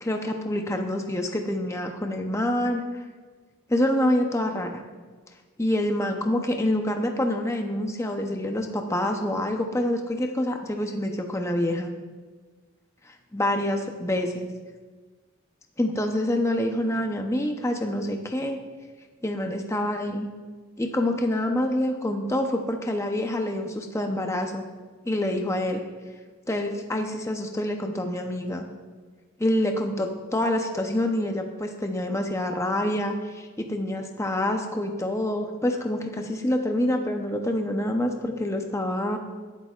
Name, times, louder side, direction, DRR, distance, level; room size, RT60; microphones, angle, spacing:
voice 1, 0.0-2.8 3.7-4.8 5.6-11.9 13.3-14.5 15.8-18.6 19.2-20.3 20.8-24.7 25.1-25.8 26.5-28.6 29.4-39.2, left 1 dB, 15° left, 4 dB, 0.6 m, -26 dB
18.5 x 8.0 x 2.4 m, 1.4 s
head